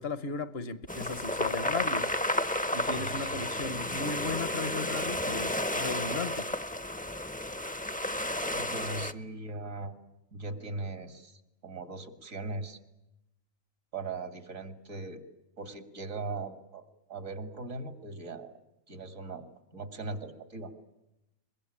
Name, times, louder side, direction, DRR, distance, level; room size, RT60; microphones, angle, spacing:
voice 1, 0.0-2.1 2.7-6.5, left 4 dB, 50° left, 1.3 m, -36 dB
sound 1, 0.9-9.1, left 1 dB, 10° left, 0.8 m, -32 dB
voice 2, 2.8-3.4 8.5-9.9 10.3-12.8 13.9-15.2 15.6-16.8 17.1-18.6 18.9-19.4 19.7-20.7, right 3 dB, 80° right, 2.9 m, -39 dB
23.5 x 22.0 x 10.0 m
omnidirectional pair, 1.4 m